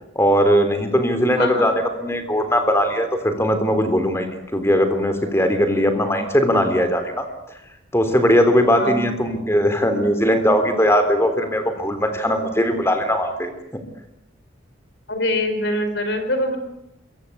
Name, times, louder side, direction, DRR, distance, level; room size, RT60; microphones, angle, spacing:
voice 1, 0.2-7.3 7.9-13.8, equal, 15° left, 8 dB, 3.5 m, -19 dB
voice 2, 1.3-1.7 8.8-9.1 15.1-16.6, left 1 dB, 60° left, 7 dB, 4.7 m, -24 dB
26.0 x 23.5 x 8.6 m, 0.85 s
head